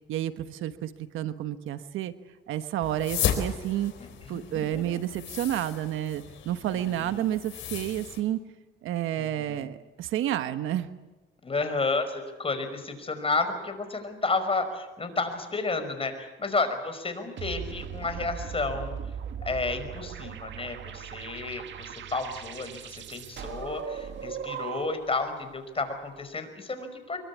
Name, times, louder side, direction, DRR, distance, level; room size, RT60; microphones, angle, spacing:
voice 1, 0.1-2.1 2.5-3.9 4.3-8.4 8.8-10.9, right 12 dB, 90° right, 10 dB, 1.3 m, -30 dB
sound 1, 2.8-8.2, left 8 dB, 75° left, 4.3 m, -35 dB
voice 2, 4.3-5.0 6.7-7.3 9.2-9.7 11.4-19.0 19.4-27.2, left 3 dB, 30° left, 8 dB, 5.4 m, -31 dB
sound 2, 17.4-25.2, right 8 dB, 70° right, 1.9 m, -38 dB
25.0 x 23.0 x 8.5 m, 1.1 s
cardioid pair, 90°, 20 cm